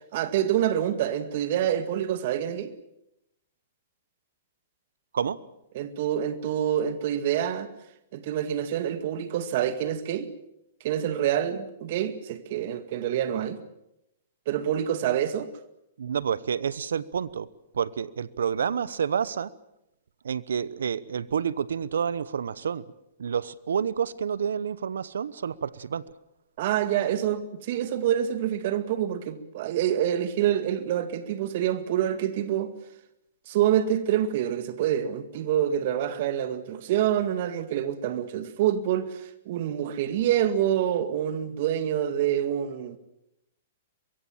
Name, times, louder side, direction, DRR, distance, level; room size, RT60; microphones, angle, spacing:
voice 1, 0.0-2.7 5.7-7.7 8.1-10.3 10.8-13.6 14.5-15.5 26.6-32.7 33.5-43.0, right 10 dB, 55° right, 2.0 m, -26 dB
voice 2, 16.0-17.5 17.7-19.5 20.2-22.8 23.2-26.0, right 7 dB, 80° right, 1.0 m, -29 dB
23.5 x 22.5 x 7.4 m
hypercardioid pair, 125°, 0 cm